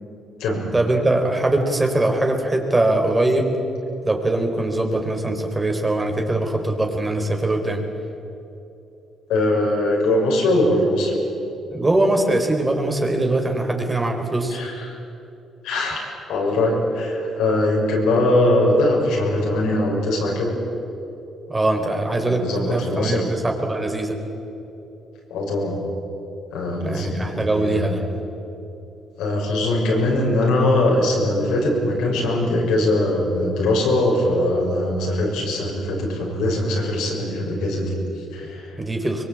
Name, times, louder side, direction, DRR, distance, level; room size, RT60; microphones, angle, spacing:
voice 1, 0.7-3.5 4.0-7.8 11.7-14.6 21.5-24.2 26.8-28.0 38.8-39.2, right 2 dB, 20° right, 3 dB, 4.0 m, -22 dB
voice 2, 9.3-11.1 14.5-15.0 15.6-20.6 22.1-23.2 25.3-25.8 26.5-27.9 29.2-38.8, left 1 dB, 90° left, -1 dB, 6.7 m, -21 dB
24.0 x 22.5 x 8.7 m, 2.9 s
cardioid pair, 90°, 0 cm